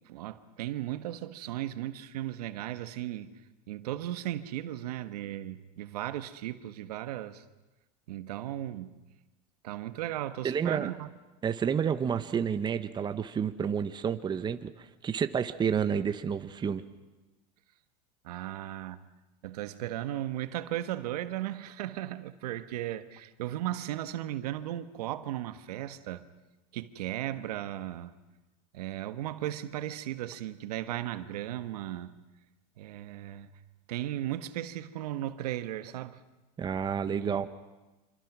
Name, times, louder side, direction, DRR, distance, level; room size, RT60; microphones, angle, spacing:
voice 1, 0.1-3.4 3.7-7.4 8.1-9.0 9.6-11.1 18.2-19.0 19.4-26.3 26.7-28.1 28.7-32.1 32.8-33.5 33.9-36.2 37.0-37.4, right 13 dB, 80° right, 1.4 m, -36 dB
voice 2, 10.4-10.9 11.4-16.8 36.6-37.5, right 7 dB, 20° right, 1.1 m, -30 dB
27.0 x 25.5 x 6.2 m
supercardioid pair, 120°, 20 cm